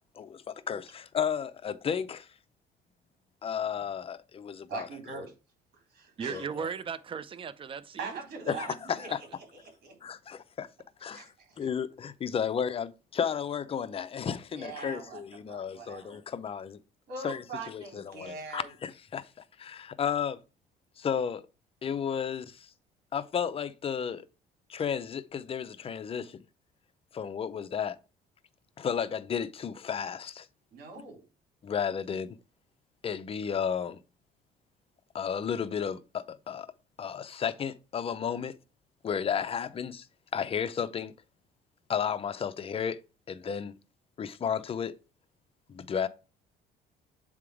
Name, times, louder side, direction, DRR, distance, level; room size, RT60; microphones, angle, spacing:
voice 1, 0.2-2.3 3.4-4.9 5.2-5.3 6.3-6.7 8.5-9.2 10.0-10.7 11.0-11.3 11.6-16.8 17.2-19.3 19.6-20.4 21.0-21.4 21.8-22.7 23.1-24.3 24.7-26.4 27.1-28.0 28.8-30.5 31.6-32.4 33.0-34.0 35.1-36.7 37.0-38.6 39.0-40.1 40.3-41.1 41.9-43.0 43.3-43.8 44.2-44.9 45.7-46.1, left 7 dB, 35° left, 0.6 m, -33 dB
voice 2, 4.7-5.3 5.9-6.5 8.0-9.1 9.5-9.9 11.1-11.7 14.5-15.2 15.5-16.2 17.1-18.7 30.7-31.2, right 4 dB, 65° right, 3.5 m, -42 dB
voice 3, 6.2-8.2, right 6 dB, 30° right, 0.6 m, -37 dB
7.7 x 3.7 x 4.8 m
cardioid pair, 110°, 17 cm